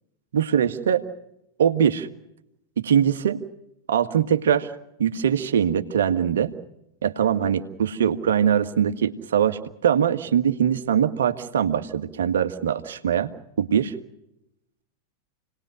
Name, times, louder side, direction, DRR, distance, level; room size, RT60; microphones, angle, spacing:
voice 1, 0.3-1.0 1.6-2.1 2.8-3.4 3.9-4.7 5.0-6.5 7.0-13.3 13.6-13.9, right 8 dB, 65° right, 9 dB, 1.7 m, -22 dB
29.5 x 20.0 x 6.5 m, 0.82 s
figure-of-eight pair, 90°, 0 cm